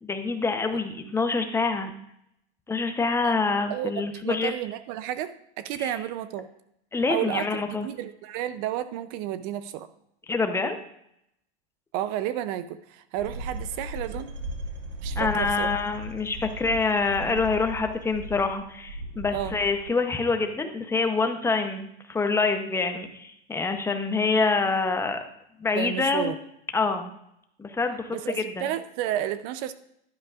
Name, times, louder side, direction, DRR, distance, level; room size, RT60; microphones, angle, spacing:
voice 1, 0.0-1.9 2.7-4.5 5.8-5.9 6.9-7.9 10.3-10.8 15.1-25.2 25.6-26.3 26.7-27.2 27.6-28.7, left 4 dB, 10° left, 7 dB, 0.6 m, -26 dB
voice 2, 3.7-6.5 7.1-9.9 11.9-14.3 15.0-15.7 19.3-19.6 25.7-26.4 28.1-29.7, right 11 dB, 40° right, 13 dB, 0.5 m, -31 dB
sound 1, 13.2-19.9, right 1 dB, 85° right, 2.1 m, -37 dB
11.0 x 9.8 x 2.4 m, 0.76 s
supercardioid pair, 135°, 34 cm